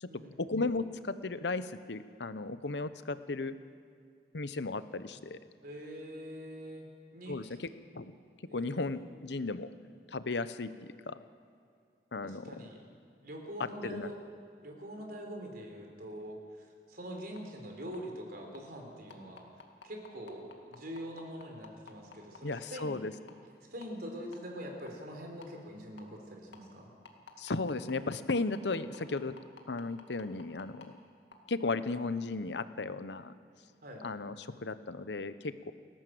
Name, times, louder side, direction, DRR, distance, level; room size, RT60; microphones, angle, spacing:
voice 1, 0.4-3.5 4.3-5.4 7.3-7.7 7.9-8.1 8.5-9.7 10.1-11.2 12.1-12.6 13.8-14.1 22.4-23.1 27.4-29.3 29.7-31.0 31.5-33.3 34.0-35.7, left 3 dB, 70° left, 12 dB, 0.9 m, -35 dB
voice 2, 5.6-7.6 8.5-8.9 12.2-12.8 13.2-14.1 14.6-19.5 19.8-23.0 23.7-26.9 33.8-34.1, equal, 60° right, 2 dB, 4.0 m, -44 dB
sound 1, 17.4-17.5 17.9-18.0 18.5-18.6 19.1-22.8 23.3-23.4 23.8-23.9 24.3-24.4 24.9-25.0 25.4-25.5 26.0-26.1 26.5-26.6 27.1-30.8 31.3-31.4, left 5 dB, 90° left, 2.2 m, -51 dB
30.0 x 11.5 x 7.8 m, 2.3 s
head